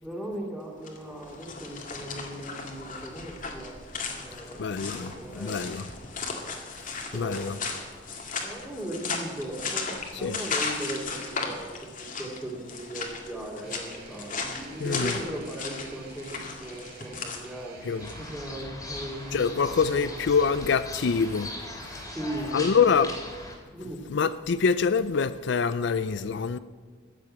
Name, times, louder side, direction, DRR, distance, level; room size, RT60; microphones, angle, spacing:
voice 1, 0.0-3.8 4.1-5.6 6.0-6.1 7.1-7.6 8.4-20.1 22.1-22.9 23.7-24.0, right 1 dB, 5° right, 2.5 m, -38 dB
sound 1, 0.7-18.4, left 4 dB, 45° left, 2.0 m, -36 dB
voice 2, 4.6-5.1 5.4-5.8 6.8-6.9 7.1-7.6 10.1-10.3 14.8-15.1 17.9-18.1 19.3-21.5 21.9-22.0 22.5-23.1 24.1-26.6, left 5 dB, 65° left, 0.4 m, -25 dB
sound 2, 13.6-22.4, right 3 dB, 55° right, 3.4 m, -50 dB
sound 3, 18.0-23.6, left 1 dB, 20° left, 2.8 m, -40 dB
14.5 x 7.6 x 8.5 m
head